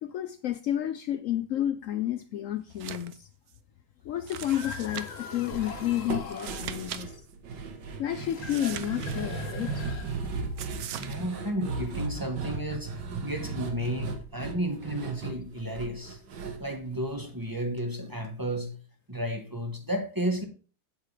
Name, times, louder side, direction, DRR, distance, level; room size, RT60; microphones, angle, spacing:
voice 1, 0.0-3.3 4.0-7.2 8.0-9.9, left 12 dB, 70° left, 0.8 m, -31 dB
sound 1, 2.7-3.2 3.5-3.6 4.3-5.3 6.3-7.0 7.3-7.4 8.4-9.5 10.6-11.2, right 10 dB, 65° right, 1.1 m, -40 dB
sound 2, 4.3-6.7 8.1-10.5, left 4 dB, 50° left, 1.4 m, -41 dB
sound 3, 5.5-17.8 18.1-18.2 18.5-18.6, right 3 dB, 85° right, 1.9 m, -37 dB
voice 2, 11.0-16.2 16.6-18.8 19.1-20.4, right 1 dB, 15° right, 1.0 m, -32 dB
8.6 x 8.2 x 3.4 m
omnidirectional pair, 1.8 m